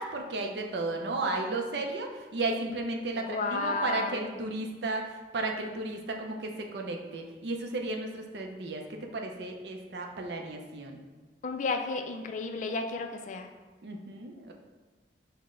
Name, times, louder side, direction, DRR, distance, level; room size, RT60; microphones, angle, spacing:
voice 1, 0.0-5.1 5.3-11.0 13.8-14.5, right 2 dB, 65° right, 3 dB, 0.5 m, -34 dB
voice 2, 3.3-4.2 11.4-13.5, left 3 dB, 45° left, 5 dB, 0.3 m, -32 dB
5.8 x 2.1 x 3.6 m, 1.3 s
head